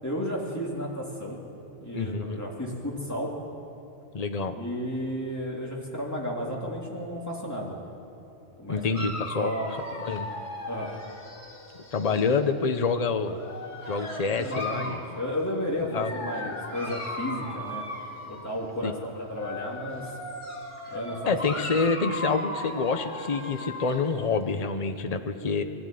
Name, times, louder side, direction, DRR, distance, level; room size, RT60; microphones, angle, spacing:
voice 1, 0.0-1.4 1.8-3.3 4.5-7.8 8.6-9.0 9.4-9.8 10.6-10.9 14.2-17.8 18.3-20.1 20.9-21.3, equal, 15° left, -4 dB, 3.3 m, -33 dB
voice 2, 1.9-2.4 4.1-4.6 8.7-9.5 10.0-10.3 11.9-13.4 13.8-15.0 15.9-16.1 18.8-18.9 21.3-25.6, left 4 dB, 35° left, 7 dB, 1.0 m, -27 dB
Dog, 8.9-12.3 13.2-15.1 15.9-18.5 19.2-24.1, left 1 dB, 70° left, 3.4 m, -37 dB
21.5 x 14.0 x 9.3 m, 2.9 s
omnidirectional pair, 1.3 m